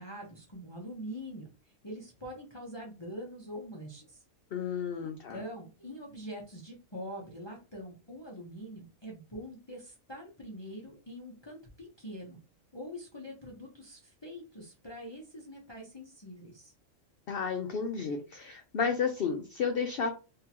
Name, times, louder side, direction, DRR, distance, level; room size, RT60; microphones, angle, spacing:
voice 1, 0.0-4.2 5.0-12.4 12.7-16.7, equal, 25° left, -2 dB, 0.8 m, -44 dB
voice 2, 4.5-5.4 17.3-20.1, left 6 dB, 55° left, 4 dB, 0.7 m, -32 dB
3.7 x 2.8 x 2.9 m, 0.31 s
omnidirectional pair, 1.4 m